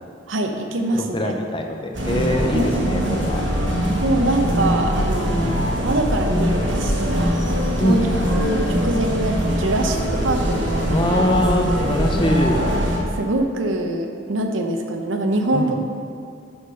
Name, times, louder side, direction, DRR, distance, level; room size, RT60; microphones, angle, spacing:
voice 1, 0.3-1.4 2.5-2.9 4.0-7.5 7.8-8.0 8.3-11.0 13.2-15.8, right 1 dB, 80° right, 4 dB, 0.7 m, -24 dB
voice 2, 0.9-3.4 5.2-5.6 7.8-8.1 10.9-12.7 15.5-15.8, left 1 dB, 25° left, 3 dB, 0.6 m, -23 dB
sound 1, 1.9-13.0, equal, 65° right, 1.3 m, -22 dB
6.2 x 5.8 x 5.7 m, 2.5 s
head